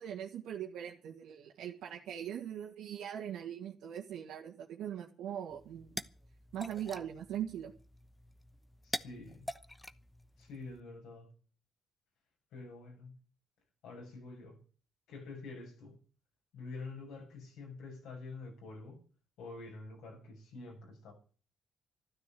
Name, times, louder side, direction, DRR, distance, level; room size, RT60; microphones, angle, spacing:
voice 1, 0.0-6.0 6.5-7.7, right 10 dB, 85° right, -2 dB, 1.9 m, -41 dB
sound 1, 5.5-10.8, left 1 dB, 10° left, 0.9 m, -46 dB
voice 2, 8.8-9.5 10.4-11.3 12.5-13.1 13.8-14.6 15.1-16.0 16.5-19.0 19.4-21.1, left 3 dB, 85° left, 1 dB, 7.3 m, -47 dB
13.0 x 12.0 x 7.7 m, 0.40 s
cardioid pair, 90°, 0 cm